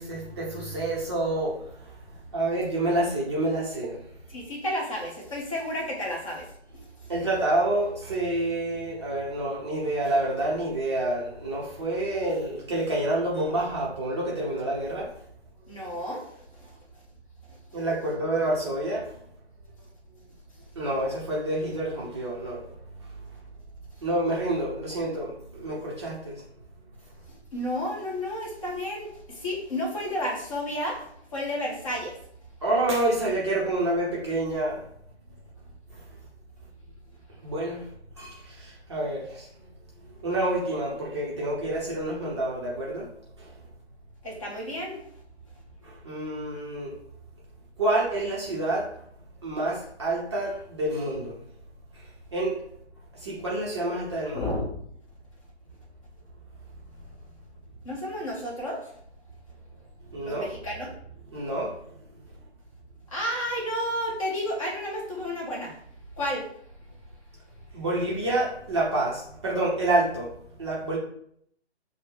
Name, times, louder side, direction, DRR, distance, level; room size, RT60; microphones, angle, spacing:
voice 1, 0.0-1.9 2.3-4.0 7.1-15.1 17.7-19.1 20.8-22.6 24.0-26.4 32.6-34.8 37.4-37.9 38.2-39.5 40.2-43.1 43.4-43.5 45.8-46.9 47.8-48.9 49.4-51.4 52.3-52.6 53.1-54.5 60.1-60.5 61.3-61.8 67.7-70.3 70.6-71.0, right 1 dB, 25° right, -6 dB, 0.6 m, -28 dB
voice 2, 4.3-6.5 15.7-16.3 27.5-31.0 31.3-32.2 44.2-45.0 54.3-54.7 57.8-58.9 60.2-60.9 63.1-65.7 66.2-66.5, left 1 dB, 30° left, -2 dB, 1.1 m, -31 dB
5.7 x 2.1 x 3.2 m, 0.68 s
figure-of-eight pair, 140°, 34 cm